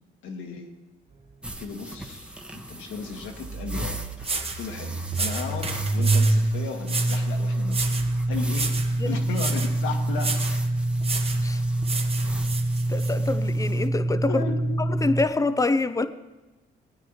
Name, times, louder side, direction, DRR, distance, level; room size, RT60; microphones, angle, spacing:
voice 1, 0.2-0.7 1.4-4.0 4.6-8.7 9.0-10.3 14.3-14.8, left 5 dB, 80° left, 3 dB, 1.7 m, -35 dB
sound 1, 1.3-1.4 1.6-1.7 3.2-15.2, right 2 dB, 60° right, 2.8 m, -26 dB
sound 2, 1.4-13.9, right 1 dB, 5° right, 1.0 m, -42 dB
sound 3, 3.8-3.9 4.2-4.6 5.1-6.4 6.8-7.3 7.7-8.1 8.5-8.9 9.3-9.7 10.2-10.6 11.0-11.4 11.8-13.1, right 4 dB, 30° right, 1.2 m, -31 dB
voice 2, 12.9-14.4 15.0-16.1, left 3 dB, 15° left, 11 dB, 0.6 m, -25 dB
19.5 x 9.3 x 3.2 m, 1.1 s
cardioid pair, 90°, 20 cm